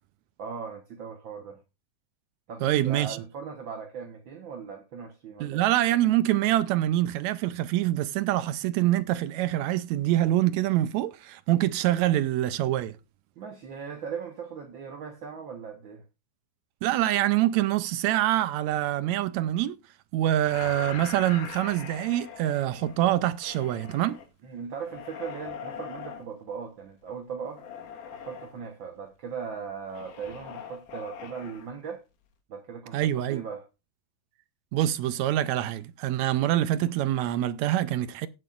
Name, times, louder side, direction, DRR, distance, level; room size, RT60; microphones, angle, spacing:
voice 1, 0.4-1.6 2.5-5.6 13.4-16.0 24.4-27.6 28.1-32.0 32.5-33.7, right 6 dB, 60° right, 1.2 m, -38 dB
voice 2, 2.6-3.2 5.4-12.9 16.8-19.8 20.1-24.2 32.9-33.4 34.7-38.3, right 13 dB, 80° right, 1.7 m, -25 dB
sound 1, 20.5-24.3 24.8-26.2 27.5-28.6 29.9-31.7, left 8 dB, 80° left, 3.0 m, -42 dB
17.0 x 7.7 x 2.5 m
omnidirectional pair, 3.7 m